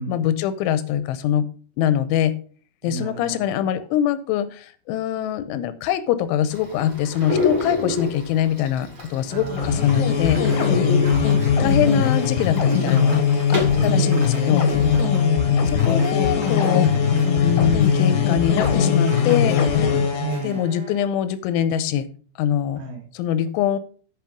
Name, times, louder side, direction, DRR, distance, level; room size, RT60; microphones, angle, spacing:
voice 1, 0.0-1.5 1.8-2.3 2.8-10.4 11.6-14.7 15.7-16.9 17.4-19.6 20.4-22.1 22.4-22.8 23.1-23.8, left 10 dB, 85° left, 13 dB, 3.1 m, -23 dB
voice 2, 2.8-3.2 9.3-9.7 11.0-11.8 13.8-14.5 15.3-15.7 20.2-20.6 22.8-23.0, right 5 dB, 70° right, 1 dB, 2.3 m, -32 dB
sound 1, 6.5-14.9, left 4 dB, 30° right, 2.8 m, -30 dB
sound 2, 9.4-20.4, left 6 dB, 70° left, 2.1 m, -20 dB
sound 3, 10.1-21.0, right 4 dB, 45° right, 2.2 m, -39 dB
8.6 x 6.0 x 5.1 m, 0.43 s
omnidirectional pair, 5.5 m